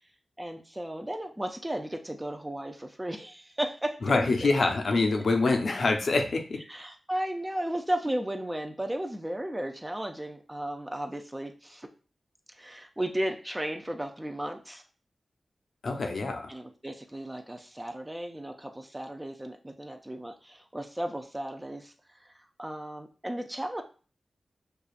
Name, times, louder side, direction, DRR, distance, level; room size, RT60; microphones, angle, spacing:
voice 1, 0.4-4.5 6.7-11.9 12.6-14.8 16.5-21.9 22.2-22.3 22.6-23.8, right 1 dB, 15° right, 4 dB, 0.5 m, -35 dB
voice 2, 4.0-6.6 15.8-16.4, left 3 dB, 70° left, 3 dB, 0.7 m, -25 dB
6.6 x 2.4 x 2.4 m, 0.37 s
wide cardioid pair, 90°, 0 cm